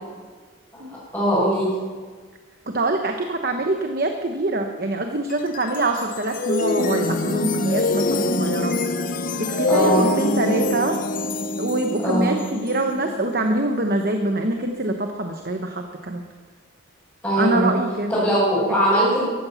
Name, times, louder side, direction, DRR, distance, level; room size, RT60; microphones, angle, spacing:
voice 1, 1.1-1.7 9.7-10.1 12.0-12.3 17.2-17.8 18.1-19.2, equal, 15° left, -11 dB, 5.9 m, -20 dB
voice 2, 2.7-8.7 9.4-11.0 11.6-16.2 17.4-18.1, right 2 dB, 50° right, 5 dB, 1.0 m, -24 dB
sound 1, 5.3-14.6, left 2 dB, 40° left, 0.8 m, -25 dB
15.5 x 11.5 x 7.1 m, 1.5 s
head